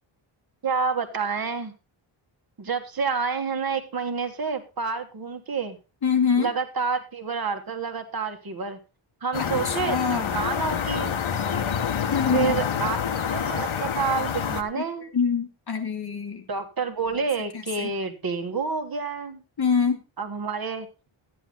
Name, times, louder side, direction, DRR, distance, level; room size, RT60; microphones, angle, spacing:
voice 1, 0.6-1.7 2.6-5.8 6.4-8.8 9.2-11.2 12.3-15.1 16.5-19.4 20.2-20.9, right 5 dB, 45° right, 6 dB, 1.5 m, -29 dB
voice 2, 6.0-6.5 9.4-10.4 12.1-12.5 14.8-14.9 15.1-16.4 17.8-17.9 19.6-20.0, left 6 dB, 50° left, 4 dB, 2.5 m, -25 dB
sound 1, 9.3-14.6, left 7 dB, 70° left, 1.3 m, -27 dB
13.0 x 10.0 x 3.9 m, 0.30 s
wide cardioid pair, 170°, 49 cm